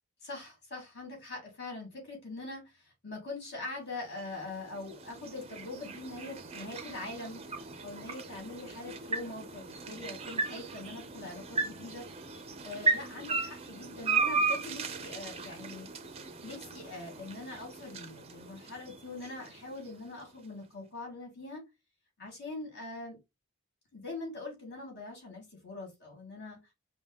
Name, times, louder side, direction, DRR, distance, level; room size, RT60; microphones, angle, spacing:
voice 1, 0.2-7.4 7.8-12.1 12.6-15.9 16.4-21.6 22.2-23.2 23.9-26.6, left 2 dB, 55° left, 2.7 m, -43 dB
sound 1, 4.0-20.2, right 4 dB, 30° right, 0.6 m, -36 dB
5.2 x 2.3 x 3.6 m
head